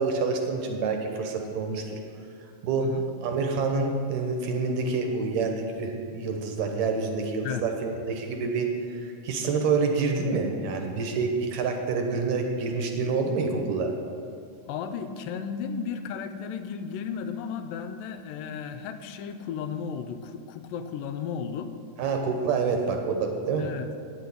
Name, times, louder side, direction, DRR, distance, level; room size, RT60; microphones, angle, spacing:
voice 1, 0.0-2.0 2.6-2.9 3.2-14.0 22.0-23.7, right 4 dB, 70° right, 3 dB, 1.9 m, -27 dB
voice 2, 14.7-21.7 23.6-23.9, left 7 dB, 80° left, 9 dB, 2.2 m, -34 dB
9.3 x 6.3 x 8.3 m, 2.4 s
omnidirectional pair, 4.0 m